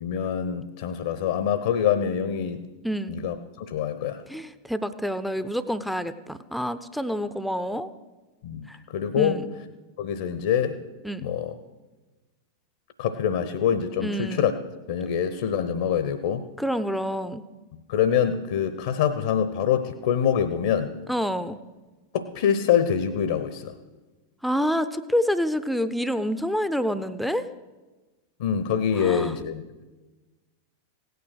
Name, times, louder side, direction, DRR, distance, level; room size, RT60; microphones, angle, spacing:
voice 1, 0.0-2.6 3.1-4.2 8.4-8.7 8.9-9.4 10.0-10.8 11.2-11.5 13.0-14.5 14.9-16.4 17.9-20.9 22.1-23.7 28.4-29.6, left 8 dB, 55° left, 11 dB, 0.8 m, -25 dB
voice 2, 2.8-3.1 4.3-7.9 8.7-8.8 9.2-9.5 11.0-11.2 14.0-14.5 16.6-17.4 21.1-21.6 24.4-27.5 29.0-29.3, equal, ahead, 12 dB, 0.6 m, -27 dB
17.0 x 9.4 x 6.2 m, 1.2 s
figure-of-eight pair, 90°, 0 cm